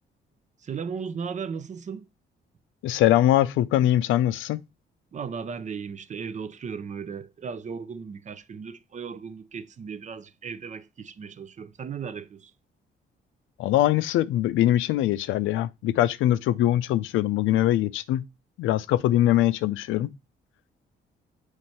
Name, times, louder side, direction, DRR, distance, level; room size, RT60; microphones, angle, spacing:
voice 1, 0.6-2.1 5.1-12.5, right 6 dB, 35° right, 0.5 m, -36 dB
voice 2, 2.8-4.6 13.6-18.2 18.6-20.1, left 13 dB, 85° left, 0.5 m, -22 dB
7.7 x 3.2 x 4.3 m
cardioid pair, 90°, 20 cm